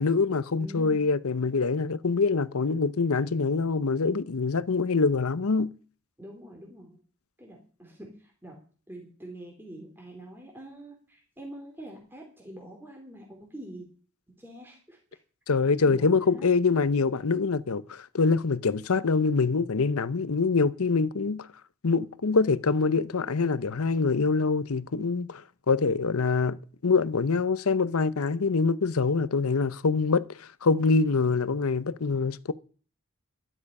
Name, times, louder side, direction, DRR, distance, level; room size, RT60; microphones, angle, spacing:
voice 1, 0.0-5.7 15.5-21.5 21.8-32.5, left 4 dB, 80° left, 0.7 m, -25 dB
voice 2, 0.6-1.0 6.2-7.0 7.4-8.6 8.9-13.9 14.4-15.0 15.9-16.5, right 1 dB, 10° right, 2.9 m, -44 dB
13.0 x 11.0 x 5.5 m
head